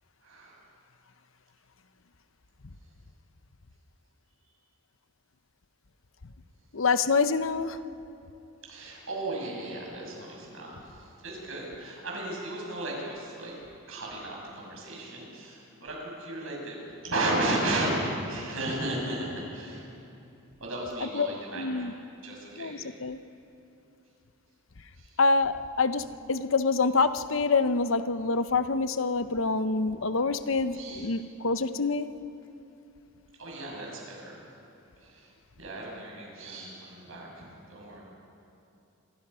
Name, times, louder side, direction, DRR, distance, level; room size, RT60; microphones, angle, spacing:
voice 1, 0.2-0.6 8.6-13.6 13.9-16.8 17.0-19.9 20.6-21.9 22.2-22.8 24.9-25.2 30.7-31.1 33.4-34.5 35.0-35.3 35.6-38.0, right 1 dB, 70° right, -2 dB, 6.8 m, -34 dB
voice 2, 6.7-7.8 21.0-21.3 21.6-21.9 22.6-23.2 25.2-32.1, left 4 dB, 65° left, 11 dB, 0.8 m, -26 dB
27.0 x 22.0 x 5.6 m, 2.8 s
head